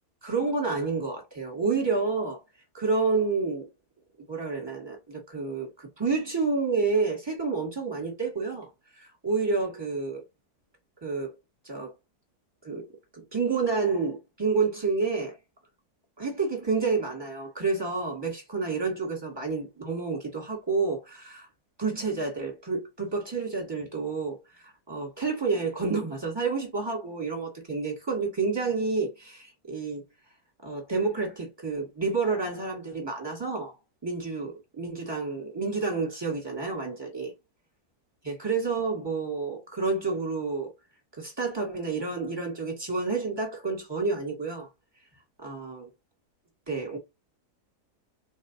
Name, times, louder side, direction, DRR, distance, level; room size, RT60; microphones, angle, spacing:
voice 1, 0.2-2.4 2.7-3.7 4.3-8.7 9.0-10.2 11.0-11.3 11.7-11.9 12.6-12.9 13.1-15.4 16.2-21.5 21.8-24.4 24.9-30.0 30.6-33.7 34.0-37.3 38.2-40.7 41.2-44.7 45.4-45.9 46.7-47.0, right 4 dB, 15° right, 2.0 m, -29 dB
4.3 x 3.2 x 2.8 m
omnidirectional pair, 1.7 m